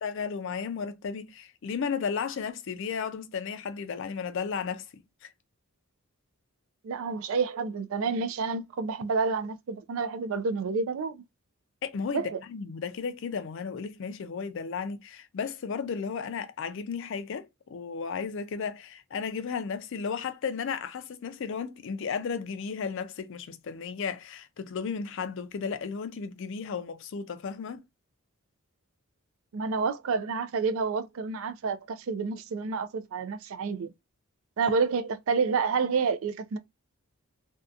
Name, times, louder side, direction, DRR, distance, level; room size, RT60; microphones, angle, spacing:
voice 1, 0.0-5.3 11.8-12.2 12.5-27.8, left 6 dB, 60° left, 0.4 m, -34 dB
voice 2, 6.8-11.2 12.1-12.4 29.5-33.9 34.6-36.6, right 5 dB, 65° right, 0.4 m, -29 dB
2.6 x 2.2 x 2.3 m
head